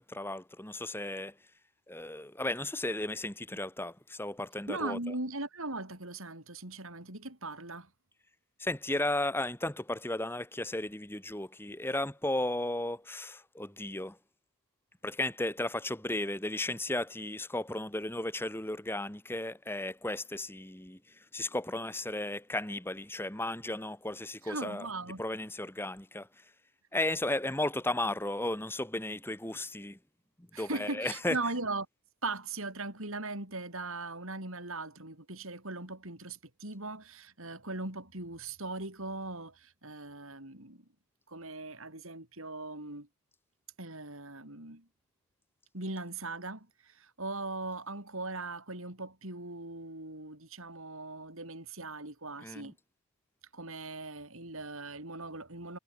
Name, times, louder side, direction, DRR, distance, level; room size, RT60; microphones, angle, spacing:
voice 1, 0.0-1.3 1.9-5.0 8.6-14.2 15.0-21.0 21.3-24.9 25.2-26.3 26.9-30.0 30.4-31.4 52.4-52.7, left 1 dB, 10° left, 1.7 m, -34 dB
voice 2, 4.7-7.9 24.4-25.2 30.5-31.9 32.2-40.8 41.3-43.1 43.8-44.9 45.7-52.8 53.5-55.8, right 2 dB, 70° right, 6.2 m, -39 dB
head